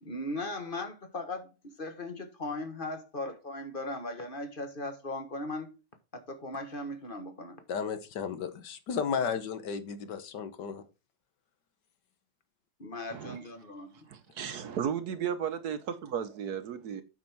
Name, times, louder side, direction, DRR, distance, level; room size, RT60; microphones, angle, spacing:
voice 1, 0.0-5.7 6.1-7.6 12.8-14.1, left 2 dB, 30° left, 1.5 m, -38 dB
voice 2, 7.7-10.8, left 6 dB, 65° left, 1.5 m, -34 dB
voice 3, 14.1-17.0, right 8 dB, 65° right, 1.1 m, -34 dB
8.7 x 6.2 x 4.5 m
omnidirectional pair, 2.1 m